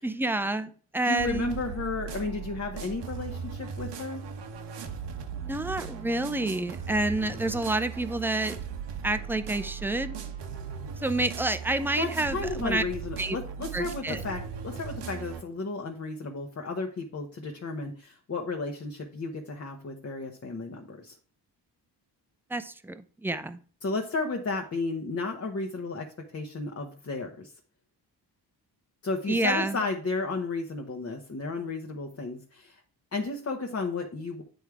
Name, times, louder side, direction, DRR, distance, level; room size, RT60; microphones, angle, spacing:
voice 1, 0.0-1.5 5.4-8.5 9.0-10.2 11.0-12.8 13.2-13.4 13.7-14.2 22.5-23.6 29.3-29.8, right 2 dB, 5° right, 11 dB, 0.5 m, -29 dB
voice 2, 1.0-4.2 12.0-21.1 23.8-27.5 29.0-32.8 33.1-34.4, left 3 dB, 35° left, 2 dB, 1.0 m, -33 dB
sound 1, 1.2-15.4, right 6 dB, 80° right, 1.0 m, -38 dB
9.1 x 3.5 x 4.7 m, 0.43 s
cardioid pair, 85°, 41 cm